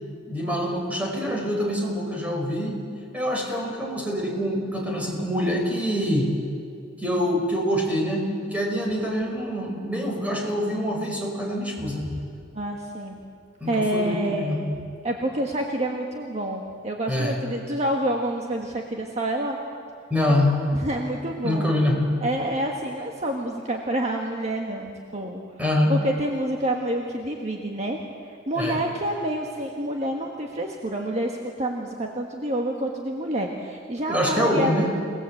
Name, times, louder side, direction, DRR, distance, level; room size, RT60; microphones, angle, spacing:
voice 1, 0.3-2.8 3.1-6.3 7.0-12.0 13.6-14.7 17.1-17.3 20.1-20.6 21.4-22.1 25.6-25.9 28.6-28.8 34.1-34.9, equal, 10° right, 0 dB, 5.0 m, -25 dB
voice 2, 12.5-13.2 13.7-14.7 15.0-19.6 20.7-21.7 22.2-25.4 25.9-34.9, right 1 dB, 35° right, 1 dB, 1.6 m, -28 dB
28.5 x 19.0 x 8.0 m, 2.3 s
head